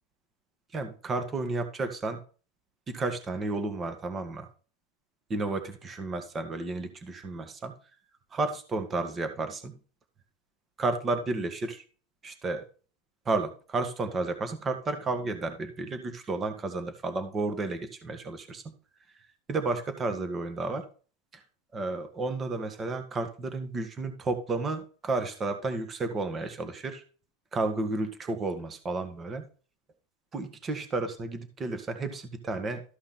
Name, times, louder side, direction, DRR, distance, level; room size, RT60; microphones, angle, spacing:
voice 1, 0.7-2.2 2.9-4.5 5.3-7.7 8.3-9.7 10.8-11.8 12.2-12.6 13.2-18.7 19.5-20.8 21.7-27.0 27.5-29.4 30.3-32.8, right 3 dB, 20° right, 8 dB, 1.7 m, -32 dB
13.5 x 5.6 x 4.3 m, 0.37 s
supercardioid pair, 150°, 0 cm